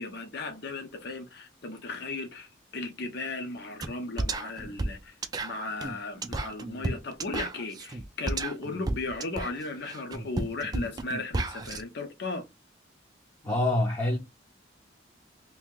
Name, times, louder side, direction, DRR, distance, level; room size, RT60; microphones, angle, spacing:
voice 1, 0.0-12.4, left 3 dB, 55° left, 0.7 m, -36 dB
sound 1, 3.8-11.8, right 2 dB, 20° right, 0.4 m, -33 dB
voice 2, 13.4-14.2, left 1 dB, 20° left, 0.6 m, -25 dB
3.0 x 2.7 x 3.7 m
head